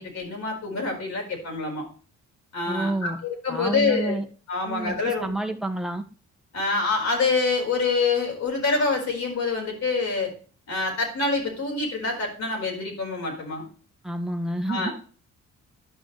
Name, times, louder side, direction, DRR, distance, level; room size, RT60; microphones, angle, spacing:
voice 1, 0.0-1.9 2.5-4.2 4.5-5.3 6.5-10.3 10.7-13.7 14.7-14.9, left 4 dB, 65° left, 1 dB, 4.6 m, -26 dB
voice 2, 2.7-3.2 3.5-4.2 4.6-6.0 14.0-14.9, right 2 dB, ahead, 4 dB, 1.2 m, -29 dB
11.0 x 6.1 x 3.2 m, 0.39 s
cardioid pair, 90°, 30 cm